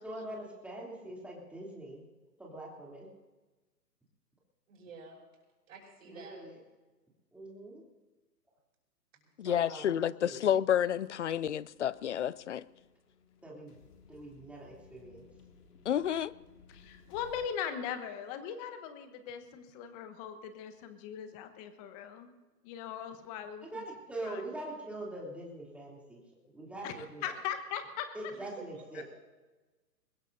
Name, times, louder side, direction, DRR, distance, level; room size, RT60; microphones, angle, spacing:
voice 1, 0.0-2.0 2.4-3.1 6.0-6.6 7.3-7.8 9.4-10.5 13.4-13.8 14.1-15.3 23.6-26.2 26.4-27.3 28.1-29.0, right 1 dB, 5° right, -4 dB, 3.0 m, -43 dB
voice 2, 4.7-5.2 5.7-6.4 28.3-28.4 28.7-29.0, right 4 dB, 50° right, -7 dB, 6.0 m, -51 dB
voice 3, 9.4-12.6 15.9-16.3, left 9 dB, 50° left, 20 dB, 0.4 m, -30 dB
sound 1, 10.7-17.5, left 5 dB, 65° left, 2.2 m, -60 dB
voice 4, 16.7-22.3 22.6-23.7 24.2-24.4 26.8-28.1 28.9-29.0, left 8 dB, 20° left, 9 dB, 1.2 m, -40 dB
22.5 x 20.5 x 2.7 m, 1.2 s
hypercardioid pair, 140°, 50 cm